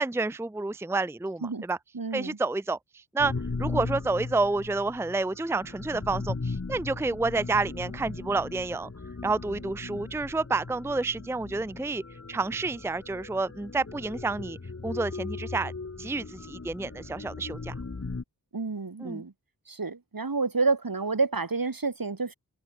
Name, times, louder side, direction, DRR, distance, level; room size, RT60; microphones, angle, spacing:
voice 1, 0.0-1.8 2.1-3.3 3.6-8.9 9.2-12.0 12.3-14.6 14.8-15.7 16.0-17.7 19.0-19.2, right 3 dB, 5° right, 0.5 m, -29 dB
voice 2, 1.9-2.4 18.5-19.3 19.7-22.3, right 4 dB, 70° right, 2.5 m, -29 dB
sound 1, 3.2-18.2, left 3 dB, 40° left, 1.4 m, -38 dB
open air
wide cardioid pair, 55°, 36 cm